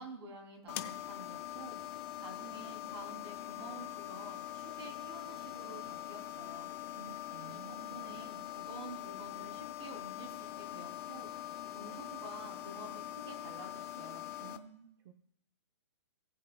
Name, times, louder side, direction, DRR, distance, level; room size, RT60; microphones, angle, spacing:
voice 1, 0.0-1.8 2.2-6.7 7.5-7.6 7.9-14.3, right 2 dB, 65° right, 2 dB, 3.0 m, -50 dB
sound 1, 0.7-14.6, left 13 dB, 30° left, 0.6 m, -43 dB
voice 2, 6.9-8.0 14.4-15.1, right 6 dB, 50° right, 7 dB, 0.7 m, -53 dB
18.0 x 7.7 x 2.2 m, 0.70 s
hypercardioid pair, 155°, 15 cm